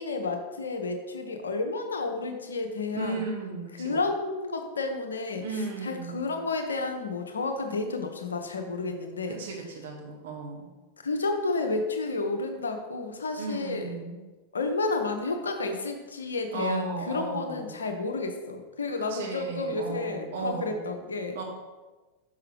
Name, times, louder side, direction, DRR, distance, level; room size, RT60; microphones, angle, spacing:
voice 1, 0.0-3.2 3.8-9.4 11.0-13.9 14.5-21.4, left 3 dB, 70° left, 5 dB, 0.7 m, -31 dB
voice 2, 2.9-4.0 5.4-6.3 9.3-10.7 13.4-14.2 16.5-17.7 19.1-20.8 21.3-21.4, right 4 dB, 60° right, 1 dB, 1.1 m, -35 dB
5.7 x 5.4 x 3.3 m, 1.2 s
figure-of-eight pair, 90°, 0 cm